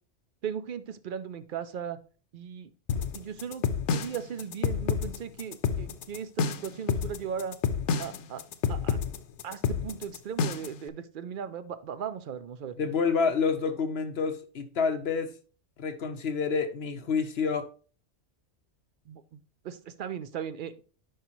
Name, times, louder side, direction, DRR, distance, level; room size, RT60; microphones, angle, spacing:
voice 1, 0.4-2.0 2.3-2.7 3.1-7.6 8.0-8.4 8.7-9.0 9.4-12.8 19.1-19.4 19.6-20.7, right 8 dB, 55° right, 0.7 m, -37 dB
sound 1, 2.9-10.8, left 6 dB, 90° left, 1.0 m, -29 dB
voice 2, 12.8-15.3 15.8-17.7, left 5 dB, 65° left, 1.0 m, -28 dB
10.0 x 4.8 x 3.0 m
omnidirectional pair, 1.2 m